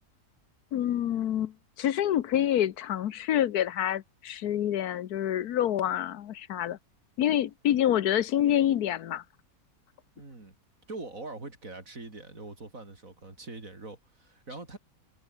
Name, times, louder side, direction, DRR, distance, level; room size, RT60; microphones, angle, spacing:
voice 1, 0.7-6.8 7.2-9.2, left 11 dB, 90° left, 1.4 m, -27 dB
voice 2, 10.1-10.6 10.9-14.8, right 3 dB, 60° right, 4.7 m, -43 dB
omnidirectional pair, 1.6 m